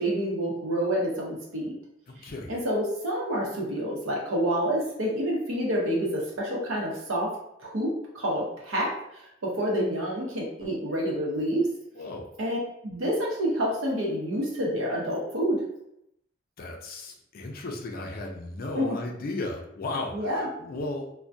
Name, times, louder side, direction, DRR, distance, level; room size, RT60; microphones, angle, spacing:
voice 1, 0.0-1.7 2.2-7.3 7.6-7.9 8.1-11.7 12.4-12.6 12.8-15.6 18.7-19.0 20.1-20.5, equal, 90° right, -3 dB, 0.8 m, -28 dB
voice 2, 2.1-2.5 11.9-12.3 16.6-21.1, left 2 dB, 45° left, 1 dB, 0.4 m, -35 dB
2.2 x 2.1 x 2.6 m, 0.79 s
head